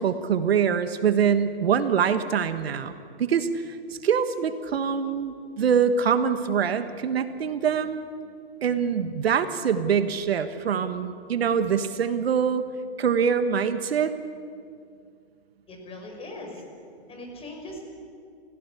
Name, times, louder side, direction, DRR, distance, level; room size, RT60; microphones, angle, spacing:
voice 1, 0.0-3.6 4.0-8.0 8.6-12.7 13.0-14.1, right 7 dB, 70° right, 10 dB, 1.5 m, -24 dB
voice 2, 15.7-16.6 17.1-17.8, left 1 dB, 20° left, 2 dB, 5.2 m, -40 dB
29.5 x 16.0 x 8.4 m, 2.3 s
hypercardioid pair, 135°, 31 cm